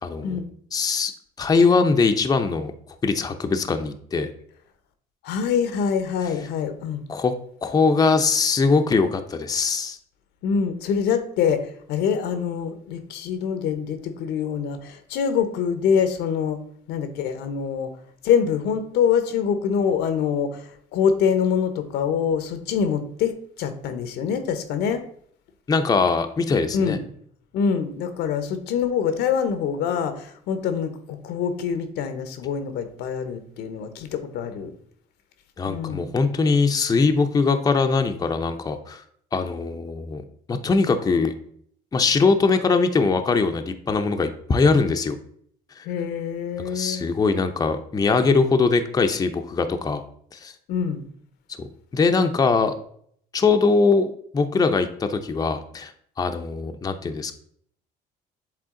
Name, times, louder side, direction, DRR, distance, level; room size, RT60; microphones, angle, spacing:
voice 1, 0.0-0.4 0.7-1.1 1.4-2.7 3.0-4.3 7.1-7.3 7.6-10.0 25.7-27.0 35.6-39.0 39.3-41.3 41.9-45.2 45.8-45.9 46.7-50.0 50.3-50.5 51.6-52.7 53.3-55.9 56.2-57.3, left 4 dB, 20° left, 6 dB, 0.5 m, -21 dB
voice 2, 5.2-7.0 10.4-16.6 16.9-17.9 18.2-25.0 26.7-27.0 27.5-34.7 35.7-36.1 45.8-47.0 50.7-51.0, left 7 dB, 85° left, 9 dB, 0.8 m, -25 dB
7.7 x 3.6 x 3.7 m, 0.64 s
cardioid pair, 110°, 17 cm